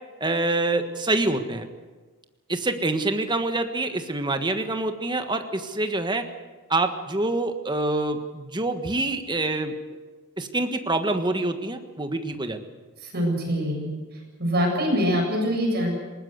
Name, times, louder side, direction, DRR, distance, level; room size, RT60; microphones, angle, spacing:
voice 1, 0.2-1.7 2.5-6.2 6.7-9.7 10.4-12.6, right 2 dB, 20° right, 7 dB, 1.5 m, -26 dB
voice 2, 13.0-13.9 14.4-16.0, equal, 45° right, 0 dB, 7.8 m, -24 dB
20.0 x 19.5 x 8.1 m, 1.3 s
head